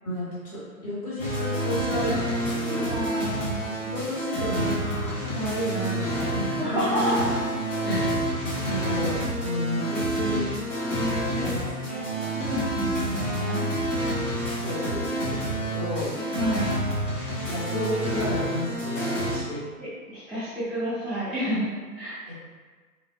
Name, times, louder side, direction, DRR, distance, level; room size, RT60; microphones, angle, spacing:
voice 1, 0.0-2.9 3.5-6.9 7.8-8.2 8.6-10.5 11.3-11.8 12.2-12.3 14.6-16.1 17.5-19.6 22.3-22.4, equal, 25° left, -10 dB, 1.0 m, -32 dB
sound 1, 1.2-19.4, right 1 dB, 55° left, 1.4 m, -28 dB
voice 2, 2.7-3.6 6.6-7.2 7.8-8.0 10.9-11.6 11.8-12.1 12.3-13.7 16.3-16.7 19.8-21.7 21.9-22.2, equal, ahead, -12 dB, 0.3 m, -30 dB
3.2 x 2.4 x 2.4 m, 1.4 s
figure-of-eight pair, 135°, 47 cm